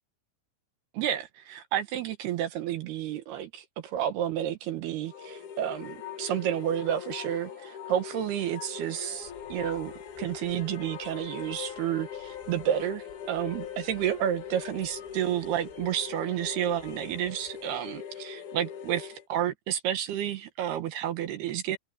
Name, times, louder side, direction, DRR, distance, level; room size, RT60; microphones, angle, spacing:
voice 1, 0.9-21.8, right 11 dB, 70° right, 3.0 m, -31 dB
sound 1, 5.1-19.3, left 8 dB, 55° left, 2.7 m, -41 dB
Fixed-wing aircraft airplane, 9.1-18.0, left 5 dB, 85° left, 8.3 m, -59 dB
omnidirectional pair, 5.3 m